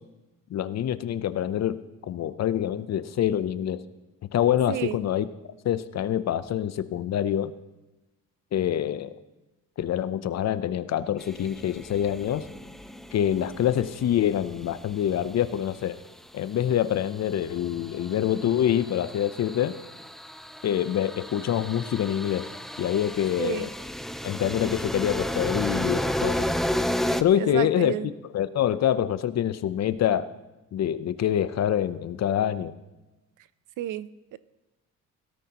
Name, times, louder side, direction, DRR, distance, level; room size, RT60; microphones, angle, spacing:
voice 1, 0.5-1.8 2.1-3.8 4.3-5.3 5.6-7.5 8.5-9.1 9.8-12.5 13.1-16.0 16.3-19.7 20.6-22.5 22.8-23.7 24.2-26.5 27.2-27.9 28.3-30.3 30.7-32.7, left 10 dB, 50° left, 14 dB, 0.7 m, -26 dB
voice 2, 4.7-5.0 23.4-23.7 27.4-28.1 33.8-34.4, right 12 dB, 65° right, 17 dB, 0.6 m, -31 dB
sound 1, 11.2-15.5 17.1-27.2, left 1 dB, ahead, 0.3 m, -33 dB
17.5 x 13.0 x 3.0 m, 1.1 s
cardioid pair, 105°, 33 cm